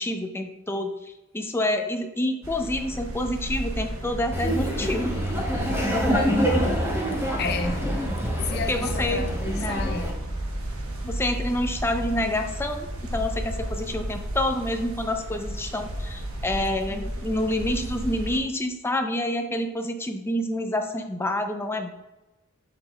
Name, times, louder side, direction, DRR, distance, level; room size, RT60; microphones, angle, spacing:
voice 1, 0.0-5.2 8.7-9.3 9.6-9.9 11.0-21.9, left 1 dB, 10° left, 0.5 m, -28 dB
sound 1, 2.4-18.4, right 1 dB, 80° right, 1.1 m, -33 dB
Laughter, 4.3-10.1, equal, 10° right, 1.0 m, -26 dB
voice 2, 7.4-8.0 8.4-10.2, left 4 dB, 50° left, 0.7 m, -32 dB
6.9 x 6.5 x 2.3 m
head